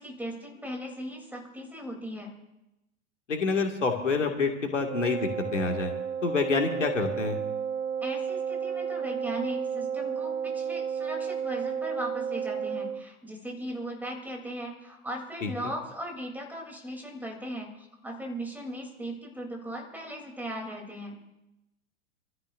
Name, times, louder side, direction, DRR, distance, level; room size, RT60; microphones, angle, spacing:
voice 1, 0.0-2.3 8.0-21.2, equal, 5° right, 1 dB, 3.3 m, -38 dB
voice 2, 3.3-5.9 6.2-7.4 15.4-15.5, left 4 dB, 80° left, 3 dB, 2.3 m, -27 dB
Wind instrument woodwind instrument, 4.8-13.1, right 7 dB, 25° right, 0.7 m, -32 dB
27.0 x 13.5 x 2.6 m, 0.94 s
figure-of-eight pair, 95°, 37 cm